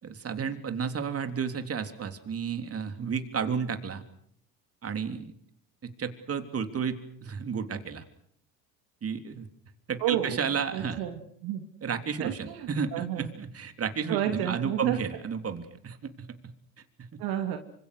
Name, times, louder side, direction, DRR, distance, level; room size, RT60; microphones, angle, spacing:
voice 1, 0.0-4.0 4.8-5.3 5.8-8.0 9.0-9.5 9.9-11.0 11.8-16.4 17.0-17.2, right 6 dB, 35° right, 7 dB, 3.5 m, -32 dB
voice 2, 10.0-10.4 10.7-11.6 12.2-13.3 14.1-15.0 17.2-17.6, right 11 dB, 60° right, 6 dB, 2.8 m, -31 dB
28.0 x 26.0 x 6.5 m, 0.67 s
hypercardioid pair, 70°, 42 cm